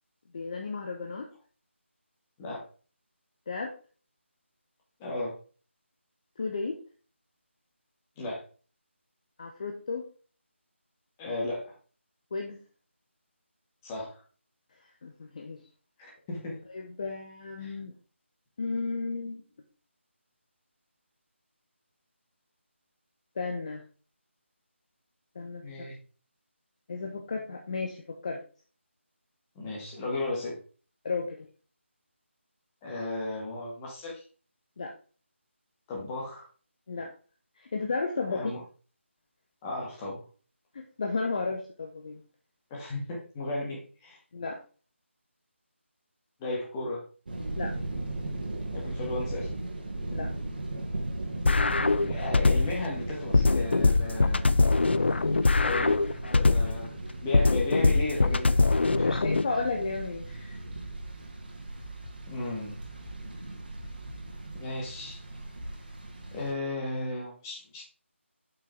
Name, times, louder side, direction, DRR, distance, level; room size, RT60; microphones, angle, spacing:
voice 1, 0.3-1.3 3.5-3.7 6.4-6.8 9.4-10.1 12.3-12.6 15.0-15.6 16.7-17.9 18.6-19.4 23.4-23.8 25.3-25.9 26.9-28.4 31.0-31.5 34.8-34.9 36.9-37.1 37.6-38.5 40.7-42.2 44.3-44.6 47.6-47.7 50.1-50.3 59.0-60.2, left 4 dB, 30° left, 2 dB, 0.8 m, -33 dB
voice 2, 5.0-5.3 8.2-8.4 11.2-11.6 13.8-14.2 16.0-16.6 17.6-17.7 25.6-26.0 29.6-30.6 32.8-34.2 35.9-36.5 38.3-38.6 39.6-40.2 42.7-44.2 46.4-47.0 48.8-49.5 52.0-54.5 55.6-56.0 56.3-57.0 57.2-59.2 60.3-60.6 62.3-62.8 64.5-65.2 66.3-67.8, left 2 dB, 15° left, -3 dB, 2.0 m, -35 dB
sound 1, 47.3-66.5, right 2 dB, 45° right, 2.1 m, -37 dB
sound 2, 51.4-52.9 53.3-56.9 57.3-59.4, left 3 dB, 55° left, 0.4 m, -23 dB
sound 3, 59.7-64.6, right 2 dB, 80° right, 2.8 m, -47 dB
8.3 x 5.6 x 3.5 m, 0.38 s
figure-of-eight pair, 155°, 7 cm